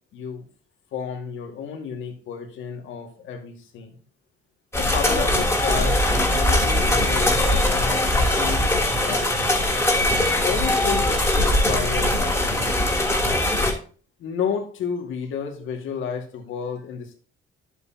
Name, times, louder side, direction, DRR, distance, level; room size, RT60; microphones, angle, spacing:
voice 1, 0.1-0.5 0.9-4.0 4.8-8.8 9.0-9.3 10.4-12.9 14.2-17.1, left 7 dB, 80° left, 3 dB, 2.1 m, -32 dB
sound 1, 4.7-13.7, left 1 dB, 10° left, 3.1 m, -21 dB
11.0 x 8.1 x 2.9 m, 0.41 s
cardioid pair, 90°, 20 cm